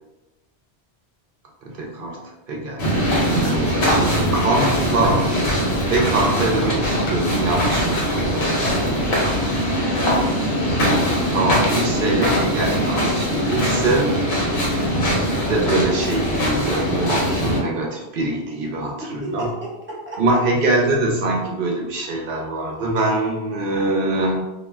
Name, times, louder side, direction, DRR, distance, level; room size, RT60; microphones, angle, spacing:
voice 1, 1.6-2.2 2.5-2.9 3.3-5.3 5.8-8.5 11.3-14.1 15.5-19.5 20.2-24.4, right 2 dB, 60° right, -1 dB, 0.7 m, -23 dB
sound 1, 2.8-17.6, equal, 60° left, 0.9 m, -21 dB
sound 2, 3.4-9.2, left 1 dB, 85° left, 1.0 m, -31 dB
voice 2, 9.6-11.2 19.0-20.2, right 1 dB, 15° right, -6 dB, 0.7 m, -32 dB
2.3 x 2.2 x 3.2 m, 1.0 s
omnidirectional pair, 1.1 m